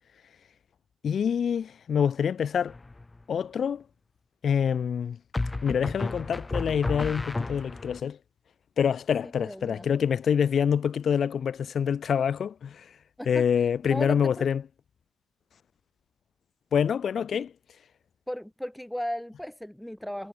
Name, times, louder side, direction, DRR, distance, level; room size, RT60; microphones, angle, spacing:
voice 1, 1.0-2.7 3.3-3.8 4.4-5.2 5.6-8.2 8.8-12.9 13.3-14.6 16.7-17.5, left 7 dB, 55° left, 0.8 m, -26 dB
sound 1, 2.7-3.2 5.3-8.0, left 2 dB, 20° left, 2.0 m, -32 dB
voice 2, 9.4-9.9 13.2-13.5 13.8-14.5 17.3-17.4 18.3-20.3, equal, 5° left, 1.8 m, -35 dB
cardioid pair, 90°, 0 cm